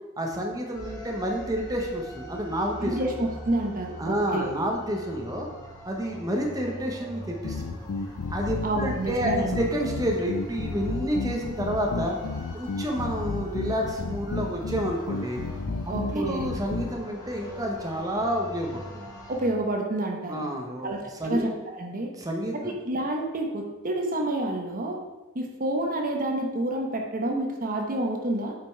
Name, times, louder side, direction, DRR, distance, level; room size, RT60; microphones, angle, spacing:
voice 1, 0.2-3.0 4.0-5.5 5.8-7.8 8.3-12.2 12.5-15.4 16.1-19.0 20.3-21.5 22.2-22.7, equal, 15° right, 0 dB, 1.0 m, -29 dB
sound 1, 0.7-19.5, equal, 15° left, 2.2 m, -43 dB
voice 2, 2.8-4.5 8.6-9.7 15.9-16.5 19.3-20.4 20.8-22.1 22.5-25.0 25.3-28.6, right 1 dB, 40° right, 2 dB, 1.0 m, -29 dB
sound 2, 7.4-16.9, left 4 dB, 80° left, 0.5 m, -32 dB
8.8 x 5.2 x 4.5 m, 1.1 s
head